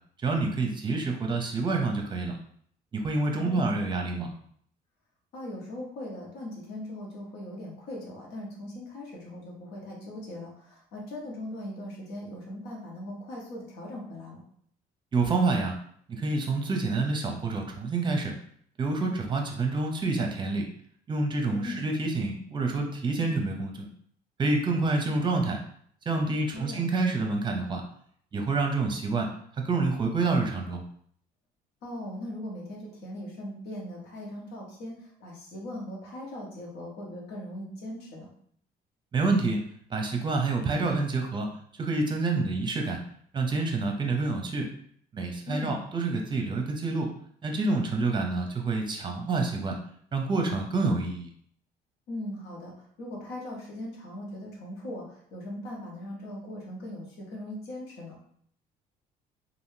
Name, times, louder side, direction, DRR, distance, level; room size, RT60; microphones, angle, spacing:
voice 1, 0.2-2.4 2.9-4.3 15.1-15.8 16.1-18.3 18.8-20.7 21.1-23.9 24.4-25.6 26.1-27.8 28.3-29.3 29.6-30.8 39.1-39.6 39.9-41.5 41.8-43.0 43.3-44.7 45.1-47.1 47.4-49.8 50.1-51.3, right 3 dB, 30° right, 2 dB, 0.7 m, -27 dB
voice 2, 3.3-3.7 5.3-14.4 21.5-21.8 26.5-26.8 31.8-38.3 45.5-45.7 52.1-58.2, left 1 dB, 80° left, -2 dB, 1.2 m, -39 dB
3.5 x 2.6 x 2.7 m, 0.63 s
cardioid pair, 110°, 17 cm